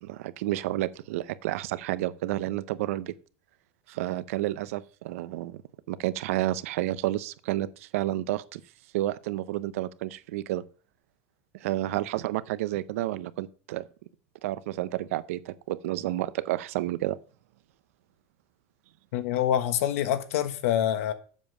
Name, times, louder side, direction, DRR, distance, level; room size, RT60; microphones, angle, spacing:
voice 1, 0.0-3.1 3.9-5.6 5.9-8.6 8.9-10.6 11.5-13.9 14.4-17.2, right 15 dB, 80° right, 0.7 m, -30 dB
voice 2, 19.1-21.1, left 10 dB, 80° left, 1.2 m, -26 dB
7.4 x 7.2 x 6.6 m
supercardioid pair, 170°, 7 cm